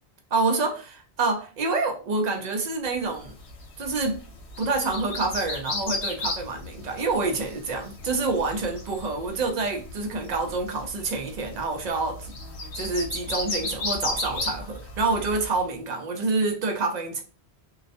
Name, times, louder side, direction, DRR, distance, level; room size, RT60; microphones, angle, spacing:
voice 1, 0.3-3.3 3.8-4.2 4.6-12.4 12.7-17.2, right 3 dB, 50° right, 0.5 m, -27 dB
sound 1, 3.2-15.6, left 2 dB, 90° left, 0.9 m, -35 dB
2.3 x 2.1 x 2.5 m
omnidirectional pair, 1.1 m